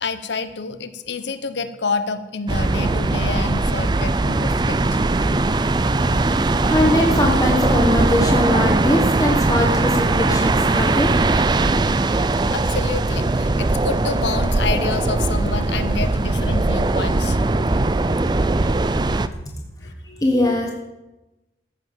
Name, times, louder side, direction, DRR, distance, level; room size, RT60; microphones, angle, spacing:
voice 1, 0.0-5.0 12.5-17.4 19.8-20.4, left 4 dB, 80° left, 11 dB, 0.8 m, -28 dB
sound 1, 2.5-19.3, right 2 dB, 25° right, 0.4 m, -20 dB
voice 2, 6.7-11.1 12.2-12.3 18.6-18.8 20.2-20.7, left 1 dB, 20° left, 0 dB, 1.3 m, -21 dB
14.0 x 5.7 x 7.2 m, 1.0 s
head